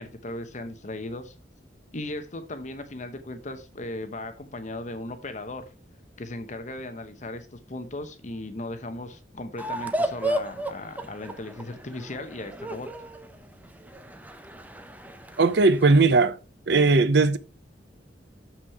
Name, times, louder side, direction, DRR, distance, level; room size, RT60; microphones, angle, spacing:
voice 1, 0.0-1.3 1.9-5.7 6.2-12.9, left 2 dB, 40° left, 0.9 m, -37 dB
sound 1, 9.6-16.0, right 1 dB, 10° right, 0.8 m, -34 dB
voice 2, 15.4-16.4 16.7-17.4, right 3 dB, 65° right, 0.6 m, -18 dB
7.2 x 6.0 x 4.7 m
head